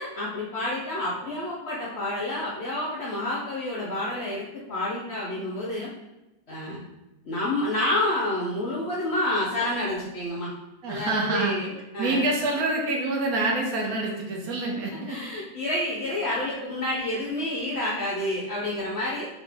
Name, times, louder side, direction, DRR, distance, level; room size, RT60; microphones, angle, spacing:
voice 1, 0.0-5.9 6.5-6.8 7.2-10.5 10.9-12.3 15.1-19.3, left 1 dB, 65° left, -5 dB, 0.7 m, -29 dB
voice 2, 10.8-11.5 12.0-15.2, right 2 dB, 70° right, 0 dB, 1.1 m, -26 dB
3.0 x 2.7 x 3.3 m, 0.98 s
omnidirectional pair, 1.7 m